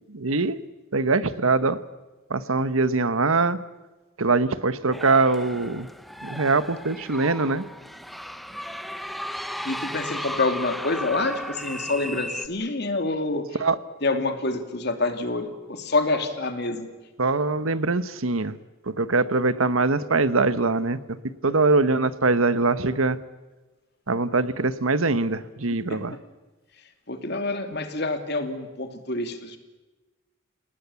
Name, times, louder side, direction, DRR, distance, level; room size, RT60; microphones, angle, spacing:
voice 1, 0.1-0.6 0.9-1.8 2.3-3.6 4.2-5.9 6.2-7.6 13.6-13.8 17.2-18.6 19.0-21.0 21.4-23.2 24.1-26.2, right 3 dB, 85° right, 14 dB, 1.2 m, -22 dB
sound 1, 4.9-12.5, equal, ahead, 1.0 m, -35 dB
voice 2, 9.6-13.4 14.0-16.9 25.9-26.0 27.1-29.6, left 2 dB, 50° left, 7 dB, 2.8 m, -27 dB
29.5 x 19.0 x 7.1 m, 1.2 s
head